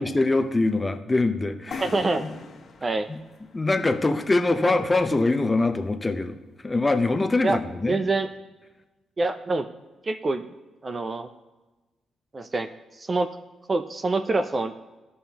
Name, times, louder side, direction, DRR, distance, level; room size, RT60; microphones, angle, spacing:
voice 1, 0.0-1.8 2.2-2.3 3.1-3.2 3.5-6.4 6.6-8.0, left 2 dB, 20° left, 8 dB, 0.6 m, -23 dB
sound 1, 1.7-5.3, left 4 dB, 55° left, 1.2 m, -42 dB
voice 2, 1.8-2.2 2.8-3.1 7.4-7.6 7.9-8.3 9.2-9.7 10.0-10.4 10.8-11.3 12.3-12.7 13.0-13.3 13.7-14.7, right 3 dB, 30° right, 9 dB, 0.4 m, -25 dB
14.5 x 5.5 x 2.9 m, 1.1 s
cardioid pair, 110°, 0 cm